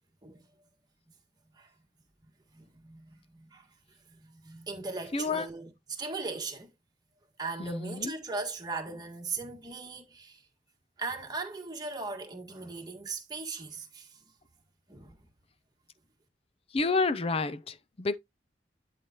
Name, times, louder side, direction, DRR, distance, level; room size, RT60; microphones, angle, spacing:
voice 1, 2.5-3.7 4.1-6.7 7.4-10.5 11.0-14.2 14.9-15.2, right 3 dB, 20° right, 1.7 m, -38 dB
voice 2, 5.1-5.5 7.6-8.1 16.7-18.2, left 3 dB, 30° left, 0.5 m, -29 dB
11.0 x 4.8 x 2.9 m
head